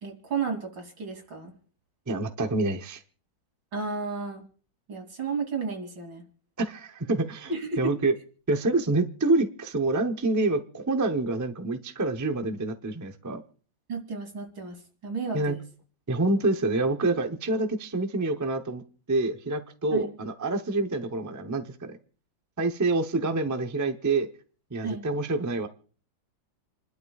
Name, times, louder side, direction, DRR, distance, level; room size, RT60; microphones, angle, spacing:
voice 1, 0.0-1.5 3.7-4.4 4.9-6.3 7.5-7.9 13.9-15.6 19.9-20.1 24.8-25.1, right 4 dB, 70° right, 3 dB, 3.7 m, -33 dB
voice 2, 2.1-3.0 6.6-7.5 7.8-8.1 8.5-13.4 15.3-15.6 16.1-22.0 22.6-24.3 24.7-25.7, right 2 dB, 20° right, 6 dB, 0.4 m, -27 dB
29.0 x 12.0 x 2.4 m, 0.42 s
omnidirectional pair, 2.1 m